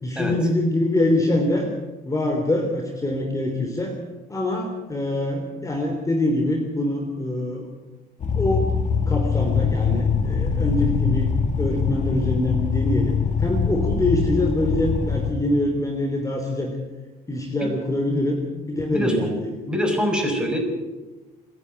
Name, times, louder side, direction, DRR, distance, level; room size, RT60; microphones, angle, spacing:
voice 1, 0.0-1.7 2.0-4.0 4.3-7.7 8.4-8.8 9.1-11.3 11.6-16.7 17.3-19.5, left 1 dB, 20° left, 2 dB, 3.3 m, -24 dB
sound 1, 8.2-15.3, left 5 dB, 45° left, 2.1 m, -23 dB
voice 2, 18.9-19.3 19.6-20.6, equal, 5° right, 3 dB, 5.7 m, -24 dB
27.0 x 10.5 x 9.5 m, 1.2 s
cardioid pair, 110°, 17 cm